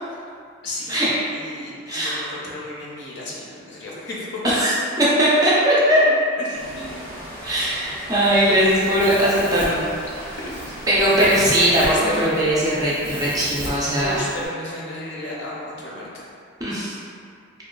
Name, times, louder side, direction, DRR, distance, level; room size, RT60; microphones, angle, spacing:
voice 1, 0.6-1.0 1.3-4.4 6.4-7.1 10.4-10.6 11.8-12.6 14.0-16.2, left 1 dB, 55° left, -5 dB, 0.5 m, -33 dB
voice 2, 1.9-2.2 4.4-4.7 5.0-6.0 7.4-9.9 10.2-10.3 10.9-14.3 16.6-17.0, equal, 15° right, -8 dB, 0.4 m, -19 dB
sound 1, 6.5-12.2, equal, 10° left, 0.7 m, -37 dB
Domestic sounds home sounds, 8.2-14.5, right 1 dB, 90° right, 0.7 m, -36 dB
2.8 x 2.2 x 2.3 m, 2.3 s
head